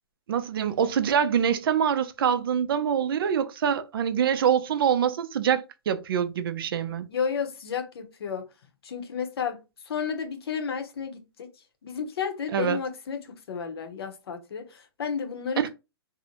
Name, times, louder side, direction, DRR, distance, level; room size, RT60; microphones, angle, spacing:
voice 1, 0.3-7.1 12.5-12.8 15.6-15.7, right 8 dB, 65° right, 0.4 m, -25 dB
voice 2, 7.1-8.5 8.8-11.5 11.8-15.7, left 6 dB, 75° left, 0.8 m, -32 dB
2.7 x 2.0 x 2.8 m
hypercardioid pair, 155°, 13 cm